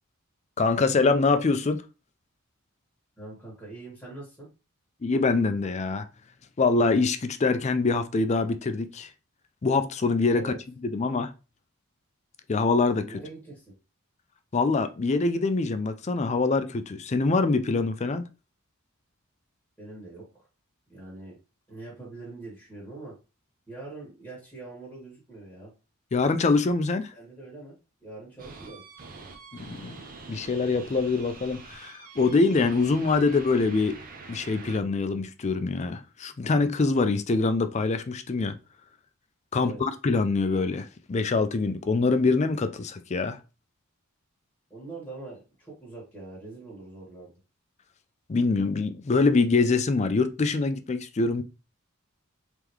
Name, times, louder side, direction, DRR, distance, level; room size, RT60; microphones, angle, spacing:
voice 1, 0.6-1.8 5.0-6.1 6.6-9.1 9.6-10.5 10.8-11.3 12.5-13.2 14.5-18.3 26.1-27.1 29.6-30.0 30.3-34.0 34.3-38.5 39.5-43.4 48.3-51.4, left 3 dB, 30° left, 0.4 m, -24 dB
voice 2, 3.2-4.5 10.3-10.6 13.0-13.7 19.8-20.5 20.9-21.4 21.7-23.1 23.7-25.7 27.1-27.8 28.0-28.8 39.6-39.8 44.7-47.3, right 2 dB, 5° left, 1.7 m, -43 dB
sound 1, 28.4-34.8, right 3 dB, 40° right, 0.8 m, -45 dB
3.6 x 3.4 x 3.1 m
head